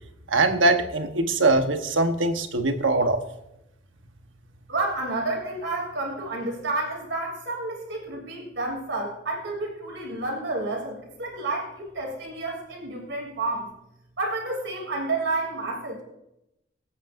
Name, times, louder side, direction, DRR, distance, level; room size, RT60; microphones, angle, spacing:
voice 1, 0.3-3.2, right 2 dB, 90° right, 6 dB, 1.1 m, -22 dB
voice 2, 4.7-13.7 14.2-16.0, right 2 dB, 70° right, -1 dB, 3.0 m, -30 dB
24.0 x 8.2 x 2.6 m, 0.86 s
head